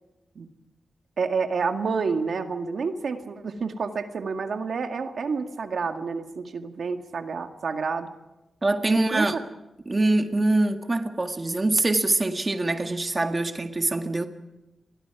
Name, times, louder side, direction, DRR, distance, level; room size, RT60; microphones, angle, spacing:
voice 1, 1.2-8.1 8.9-9.4, right 5 dB, 70° right, 5 dB, 2.0 m, -29 dB
voice 2, 8.6-9.4 9.9-14.3, right 2 dB, 25° right, 5 dB, 1.8 m, -24 dB
29.0 x 22.5 x 4.9 m, 0.98 s
wide cardioid pair, 105°, 0 cm